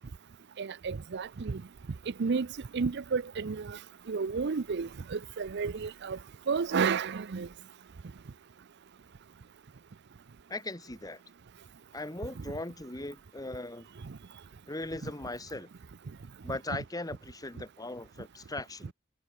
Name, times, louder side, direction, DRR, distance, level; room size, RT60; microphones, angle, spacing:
voice 1, 0.6-1.6 2.1-2.5 2.7-3.8 4.1-6.2 6.5-7.5 14.0-14.2 15.0-15.1, right 5 dB, 55° right, 0.5 m, -31 dB
voice 2, 10.5-11.2 11.9-13.9 14.7-15.7 16.4-18.9, left 2 dB, 15° left, 1.3 m, -39 dB
head